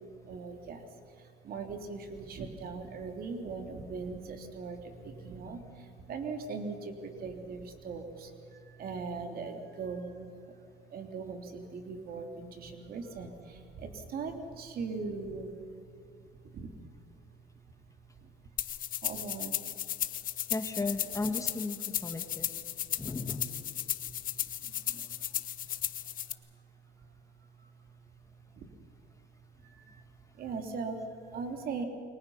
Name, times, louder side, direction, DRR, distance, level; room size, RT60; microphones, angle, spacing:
voice 1, 0.0-10.6 10.9-15.5 16.4-16.7 18.2-18.3 19.0-19.6 22.1-22.2 22.7-23.0 23.6-25.7 26.0-26.4 27.0-27.1 27.4-27.9 28.5-28.7 29.6-30.0 30.3-31.8, right 4 dB, 60° right, 4 dB, 3.3 m, -41 dB
sound 1, 18.6-26.3, left 11 dB, 55° left, 1.2 m, -35 dB
voice 2, 20.5-22.5 23.0-23.4, left 3 dB, 20° left, 6 dB, 2.0 m, -35 dB
29.0 x 23.5 x 5.8 m, 2.5 s
cardioid pair, 110°, 17 cm